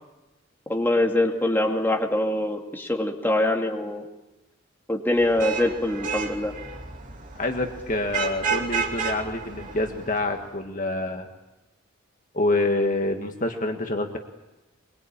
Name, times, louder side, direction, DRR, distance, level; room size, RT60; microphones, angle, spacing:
voice 1, 0.7-4.0 4.9-6.5, left 1 dB, 10° left, 1 dB, 2.5 m, -24 dB
Vehicle horn car horn honking / Traffic noise roadway noise, 5.2-10.4, right 5 dB, 40° right, 2.9 m, -31 dB
voice 2, 7.4-11.3 12.3-14.2, left 2 dB, 40° left, 4 dB, 1.8 m, -26 dB
23.5 x 23.5 x 8.8 m, 1.0 s
head